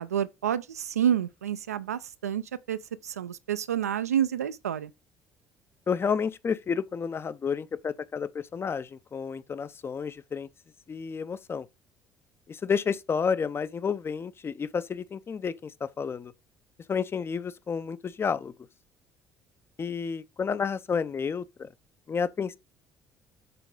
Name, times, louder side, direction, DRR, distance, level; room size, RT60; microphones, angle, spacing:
voice 1, 0.0-4.9, right 9 dB, 80° right, 0.4 m, -29 dB
voice 2, 5.9-10.5 10.9-11.7 12.5-16.3 16.9-18.5 19.8-21.7 22.1-22.6, left 6 dB, 30° left, 0.6 m, -30 dB
6.8 x 4.7 x 3.7 m
figure-of-eight pair, 50°, 8 cm